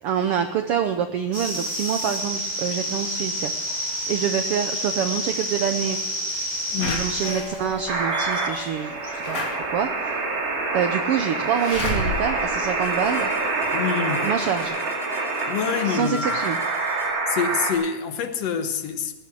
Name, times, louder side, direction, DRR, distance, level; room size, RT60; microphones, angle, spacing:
voice 1, 0.0-6.0 6.8-10.2 10.7-13.3 14.2-14.8 15.8-16.6, right 8 dB, 80° right, 8 dB, 1.3 m, -26 dB
sound 1, 1.3-17.1, equal, 20° right, 4.7 m, -32 dB
voice 2, 6.7-7.1 13.7-14.3 15.5-16.2 17.3-19.1, left 6 dB, 60° left, 8 dB, 2.0 m, -26 dB
Slam / Alarm, 6.8-13.6 14.1-14.2 14.4-14.5, left 2 dB, 45° left, 3.3 m, -33 dB
sound 2, 7.9-17.7, right 3 dB, 50° right, 3.5 m, -26 dB
18.0 x 11.5 x 6.3 m, 0.98 s
omnidirectional pair, 3.6 m